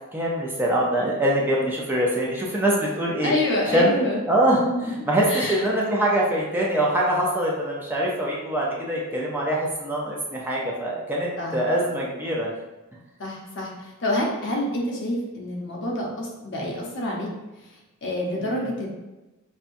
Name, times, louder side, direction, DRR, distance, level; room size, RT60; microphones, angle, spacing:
voice 1, 0.1-3.3 3.7-12.5 18.4-18.7, right 1 dB, 10° right, -4 dB, 0.5 m, -24 dB
voice 2, 3.2-4.2 4.6-4.9 5.3-5.6 11.4-11.6 13.2-13.7 14.0-17.3 18.0-18.9, left 1 dB, 55° left, -2 dB, 0.8 m, -27 dB
5.4 x 2.3 x 2.6 m, 1.1 s
head